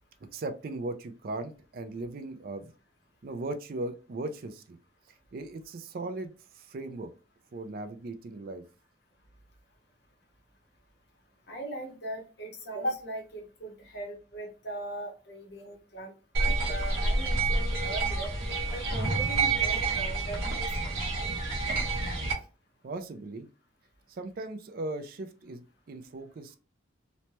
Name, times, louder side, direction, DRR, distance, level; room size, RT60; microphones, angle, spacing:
voice 1, 0.3-2.7 3.2-4.8 5.1-7.1 7.5-8.6 22.8-23.5 24.1-26.6, right 2 dB, 45° right, 8 dB, 0.3 m, -38 dB
voice 2, 11.5-18.3 18.7-20.7 21.1-21.2, right 1 dB, 55° left, 1 dB, 0.8 m, -39 dB
sound 1, 16.3-22.3, right 3 dB, 80° right, 0.9 m, -28 dB
3.1 x 2.1 x 2.8 m, 0.34 s
head